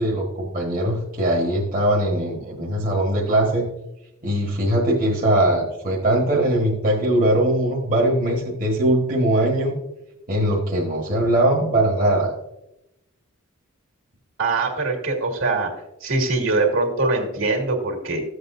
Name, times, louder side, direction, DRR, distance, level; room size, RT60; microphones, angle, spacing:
voice 1, 0.0-3.7 4.2-9.7 10.3-12.3, right 1 dB, 40° right, -3 dB, 1.5 m, -21 dB
voice 2, 14.4-15.7 16.0-18.2, right 3 dB, 65° right, 2 dB, 2.3 m, -22 dB
14.0 x 8.0 x 2.6 m, 0.89 s
head